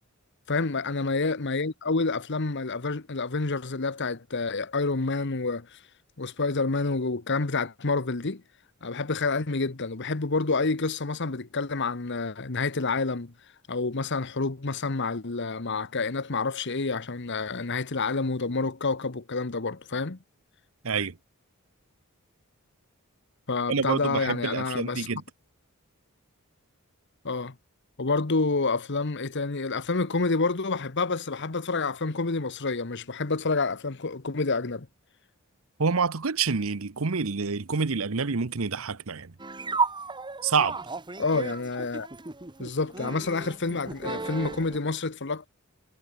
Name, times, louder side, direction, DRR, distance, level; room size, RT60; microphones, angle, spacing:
voice 1, 0.5-5.8 6.2-8.4 8.8-13.3 13.7-20.2 23.5-25.1 27.2-27.5 28.0-34.9 41.2-42.1 42.6-45.5, left 3 dB, 55° left, 1.2 m, -28 dB
voice 2, 20.8-21.2 23.7-25.2 35.8-39.3 40.4-40.8, right 5 dB, 70° right, 0.9 m, -27 dB
sound 1, 39.4-44.8, right 4 dB, 20° right, 1.4 m, -34 dB
head